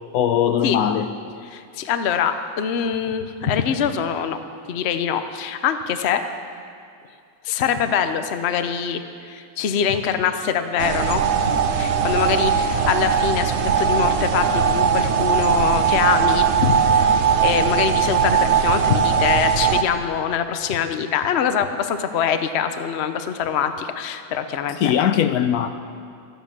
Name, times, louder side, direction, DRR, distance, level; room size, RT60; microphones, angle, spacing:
voice 1, 0.1-1.1 24.7-25.7, left 9 dB, 80° left, 9 dB, 1.1 m, -20 dB
voice 2, 1.5-4.4 4.7-6.2 7.4-11.2 11.8-24.9, left 8 dB, 55° left, 9 dB, 0.9 m, -24 dB
sound 1, 10.8-19.8, right 7 dB, 55° right, 0.9 m, -19 dB
13.5 x 10.5 x 7.4 m, 2.3 s
omnidirectional pair, 1.6 m